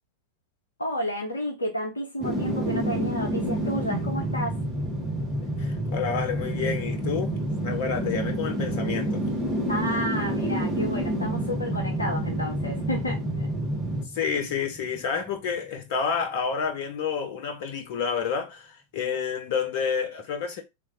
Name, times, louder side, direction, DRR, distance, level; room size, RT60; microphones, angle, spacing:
voice 1, 0.8-4.6 9.7-13.5, equal, 80° left, 0.7 m, -31 dB
sound 1, 2.2-15.2 15.6-15.7, right 1 dB, 15° right, 1.5 m, -28 dB
voice 2, 5.4-7.3 7.6-9.2 14.1-20.6, left 6 dB, 55° left, 1.0 m, -29 dB
3.2 x 2.6 x 3.7 m
figure-of-eight pair, 90°, 0 cm